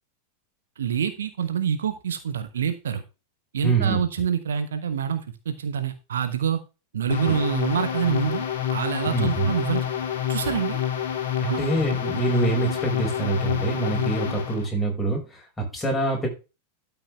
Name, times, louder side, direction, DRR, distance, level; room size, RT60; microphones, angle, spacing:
voice 1, 0.8-3.0 3.5-6.6 6.9-9.8 10.3-10.8 11.5-11.6, right 8 dB, 65° right, 10 dB, 1.2 m, -26 dB
voice 2, 3.6-4.0 9.1-9.5 11.4-16.3, right 3 dB, 10° left, -1 dB, 5.2 m, -25 dB
sound 1, 7.1-14.7, left 9 dB, 55° left, 2.6 m, -28 dB
13.0 x 5.8 x 3.4 m, 0.29 s
figure-of-eight pair, 90°, 0 cm